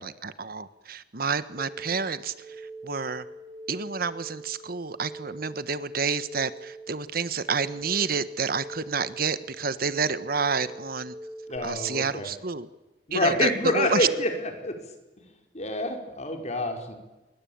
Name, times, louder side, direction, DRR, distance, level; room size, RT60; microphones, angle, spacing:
voice 1, 0.0-3.2 3.7-11.1 11.6-12.7 13.1-14.1, right 5 dB, 55° right, 14 dB, 1.3 m, -29 dB
sound 1, 1.6-11.6, right 2 dB, 25° right, 4.7 m, -43 dB
voice 2, 11.5-12.3 13.1-14.8 15.2-15.3 15.5-16.9, left 1 dB, 40° left, 4 dB, 5.1 m, -27 dB
28.0 x 23.0 x 8.9 m, 1.1 s
head